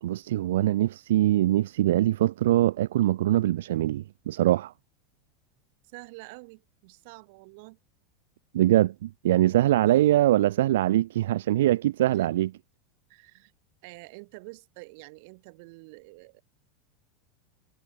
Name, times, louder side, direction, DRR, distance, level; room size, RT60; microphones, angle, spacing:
voice 1, 0.0-4.7 8.5-12.5, right 14 dB, 85° right, 0.7 m, -23 dB
voice 2, 5.9-7.8 9.8-10.2 12.1-12.3 13.1-13.5 13.8-16.4, right 29 dB, 45° right, 5.5 m, -47 dB
supercardioid pair, 180°, 0 cm